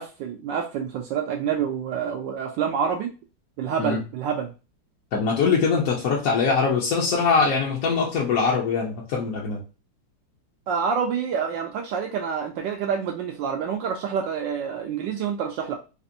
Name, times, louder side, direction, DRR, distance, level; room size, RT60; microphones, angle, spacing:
voice 1, 0.0-3.1 3.6-4.5 10.7-15.8, right 7 dB, 75° right, 3 dB, 1.1 m, -27 dB
voice 2, 5.1-9.6, left 5 dB, 65° left, -2 dB, 0.9 m, -22 dB
4.1 x 2.5 x 2.6 m, 0.31 s
omnidirectional pair, 2.4 m